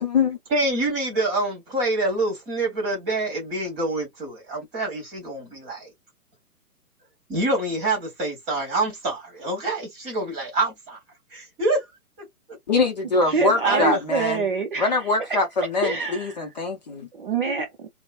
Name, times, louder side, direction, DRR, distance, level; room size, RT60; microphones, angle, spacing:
voice 1, 0.0-0.4 12.7-14.4 14.8-17.1, left 3 dB, 30° left, 0.7 m, -23 dB
voice 2, 0.5-5.9 7.3-11.0 11.3-11.8 12.2-12.3 13.6-14.0, right 2 dB, 15° right, 1.4 m, -26 dB
voice 3, 13.2-15.4 15.8-16.5 17.1-18.0, right 5 dB, 35° right, 0.6 m, -26 dB
3.0 x 2.1 x 2.4 m
figure-of-eight pair, 130°, 45 cm